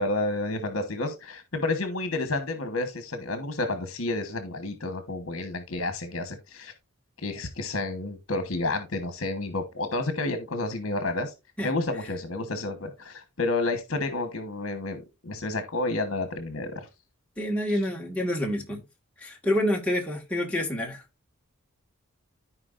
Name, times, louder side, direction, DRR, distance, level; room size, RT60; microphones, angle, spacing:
voice 1, 0.0-6.7 7.2-11.3 11.6-16.9 17.7-17.8, left 2 dB, 65° left, 1.2 m, -30 dB
voice 2, 17.4-18.8 19.2-21.0, left 1 dB, 5° left, 1.7 m, -27 dB
14.0 x 4.7 x 2.5 m
head